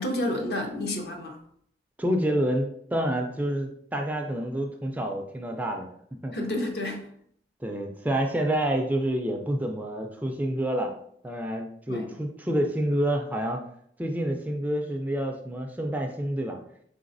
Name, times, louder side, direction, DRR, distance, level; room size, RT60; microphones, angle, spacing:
voice 1, 0.0-1.4 6.3-7.1 11.9-12.1, left 1 dB, 60° left, 2 dB, 0.8 m, -30 dB
voice 2, 2.0-5.9 6.2-6.3 7.6-10.9 11.2-13.6 14.0-16.6, right 1 dB, 10° right, 2 dB, 0.3 m, -28 dB
4.0 x 3.9 x 2.5 m, 0.66 s
head